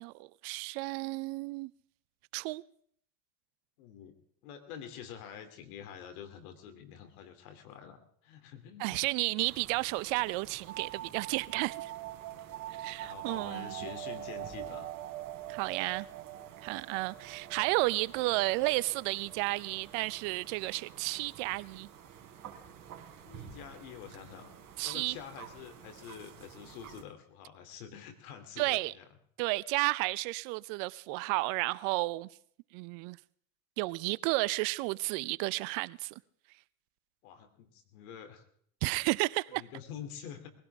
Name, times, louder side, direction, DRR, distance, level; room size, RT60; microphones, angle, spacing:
voice 1, 0.0-1.7 2.3-2.6 8.8-11.9 12.7-13.7 15.5-16.1 16.6-21.9 24.8-25.2 28.6-28.9 29.4-32.3 32.7-33.2 33.8-36.1 38.8-39.6, right 23 dB, 60° right, 0.7 m, -32 dB
voice 2, 3.8-4.1 4.4-9.0 12.6-12.7 13.0-14.9 23.2-24.5 24.8-29.1 37.2-38.4 39.0-39.1 39.5-40.5, left 8 dB, 70° left, 2.9 m, -47 dB
sound 1, 9.4-27.0, right 8 dB, 40° right, 3.3 m, -52 dB
sound 2, 10.7-20.0, right 14 dB, 75° right, 1.2 m, -44 dB
21.5 x 16.5 x 3.5 m
hypercardioid pair, 95°, 45 cm